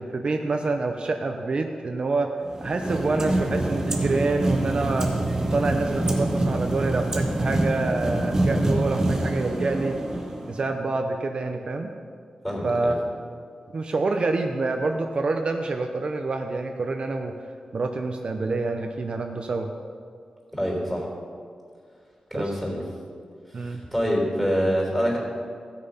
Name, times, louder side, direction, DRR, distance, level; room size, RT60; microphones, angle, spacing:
voice 1, 0.0-2.3 2.6-5.1 5.5-10.0 10.5-11.9 12.6-13.0 13.7-17.3 17.7-19.7 22.3-22.5 23.5-23.8, right 3 dB, 50° right, 4 dB, 0.7 m, -27 dB
sound 1, 2.4-10.7, right 1 dB, 25° right, 1.8 m, -26 dB
voice 2, 12.4-12.9 20.5-21.1 22.3-22.8 23.6-25.2, equal, 5° left, -2 dB, 3.5 m, -26 dB
15.0 x 6.7 x 5.5 m, 2.2 s
wide cardioid pair, 105°, 2 cm